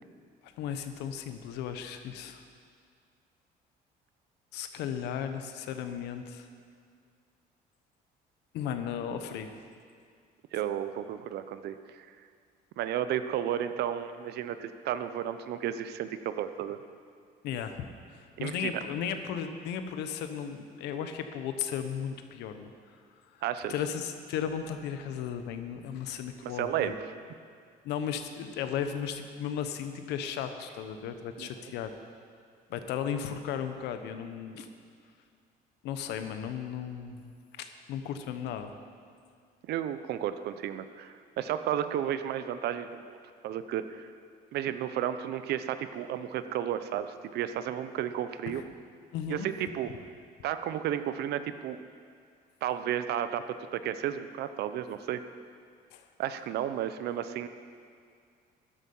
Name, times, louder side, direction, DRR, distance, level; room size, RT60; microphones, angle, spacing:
voice 1, 0.4-2.4 4.5-6.5 8.5-9.5 17.4-17.9 18.1-22.7 23.7-26.9 27.8-31.9 32.7-34.7 35.8-37.3 37.6-38.7 48.5-48.6 49.1-49.5 55.9-56.0, left 8 dB, 85° left, 8 dB, 1.0 m, -35 dB
voice 2, 10.5-12.1 12.8-16.8 18.4-18.8 23.4-23.7 26.4-27.1 31.4-31.7 39.7-43.2 43.4-44.1 44.5-48.6 49.3-49.9 50.4-51.8 52.6-55.2 56.2-57.5, right 10 dB, 75° right, 11 dB, 0.8 m, -33 dB
13.0 x 11.0 x 5.5 m, 2.2 s
cardioid pair, 110°, 17 cm